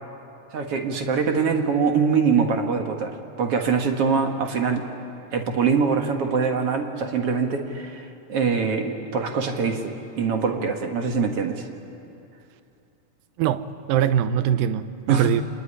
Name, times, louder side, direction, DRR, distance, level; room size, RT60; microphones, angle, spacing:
voice 1, 0.5-4.9 5.3-11.7 15.1-15.3, right 5 dB, 50° right, 4 dB, 2.1 m, -23 dB
voice 2, 13.4-15.4, right 10 dB, 85° right, 12 dB, 2.5 m, -22 dB
26.5 x 20.0 x 10.0 m, 2.7 s
omnidirectional pair, 4.0 m